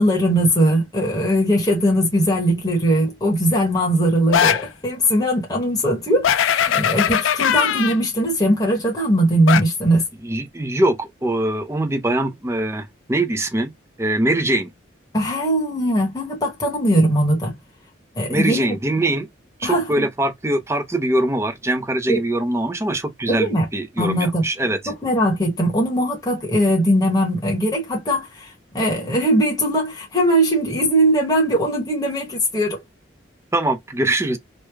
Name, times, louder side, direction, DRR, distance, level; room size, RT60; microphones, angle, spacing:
voice 1, 0.0-10.0 15.1-17.5 18.2-18.8 19.6-20.1 22.1-22.2 23.3-23.7 24.0-24.5 24.9-32.8, right 1 dB, 20° left, 1.2 m, -20 dB
sound 1, 4.3-4.7 6.2-8.0 9.5-9.6, left 9 dB, 80° left, 0.4 m, -19 dB
voice 2, 10.2-13.7 14.0-14.7 18.3-19.3 19.6-24.8 33.5-34.4, right 1 dB, 15° right, 0.5 m, -22 dB
3.2 x 2.2 x 3.4 m
head